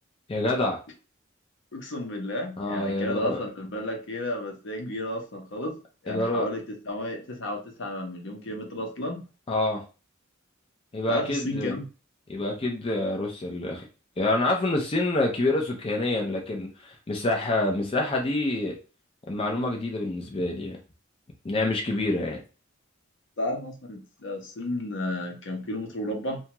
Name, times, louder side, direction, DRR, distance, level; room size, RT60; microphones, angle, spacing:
voice 1, 0.3-0.8 2.6-3.4 6.1-6.5 9.5-9.8 10.9-11.7 12.3-13.8 14.2-18.8 19.3-20.8 21.4-22.4, left 2 dB, 30° left, 0 dB, 0.5 m, -27 dB
voice 2, 1.7-5.8 6.0-9.2 11.1-11.8 23.4-26.4, left 1 dB, 65° left, 3 dB, 0.7 m, -32 dB
2.7 x 2.2 x 2.9 m, 0.33 s
head